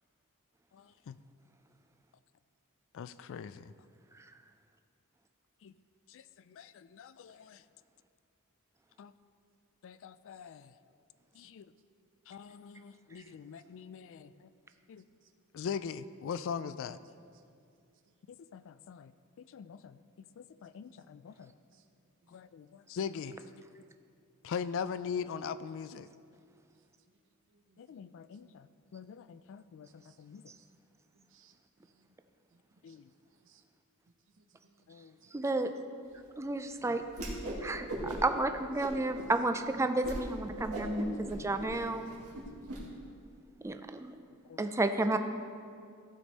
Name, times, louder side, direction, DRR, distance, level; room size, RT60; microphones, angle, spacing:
voice 1, 0.7-1.2 2.9-3.7 5.6-5.7 6.1-7.6 9.0-9.1 9.8-10.7 11.3-11.7 12.3-14.5 14.9-15.0 15.5-17.0 18.3-19.1 19.4-20.0 20.4-21.5 22.3-23.4 24.4-26.1 27.8-30.5 32.8-33.1 34.9-35.2 36.8-37.0 44.5-44.7, left 6 dB, 60° left, 14 dB, 0.3 m, -42 dB
voice 2, 27.5-28.8 30.0-30.2 30.5-30.7 31.1-31.6 31.8-32.1 32.5-33.0 33.3-33.6 34.4-34.9 35.2-35.3 36.7-37.1 38.8-38.9 41.0-41.4, right 5 dB, 60° right, 7 dB, 0.7 m, -68 dB
voice 3, 35.3-35.7 36.4-37.0 37.6-42.1 43.6-44.1 44.6-45.2, right 2 dB, 15° right, 8 dB, 0.4 m, -31 dB
Whoosh swoosh swish, 37.1-37.6 37.9-38.4 38.8-39.3 39.7-39.8 40.0-40.2 40.5-42.8, right 1 dB, 90° right, 1.8 m, -39 dB
15.0 x 5.1 x 4.1 m, 2.3 s
head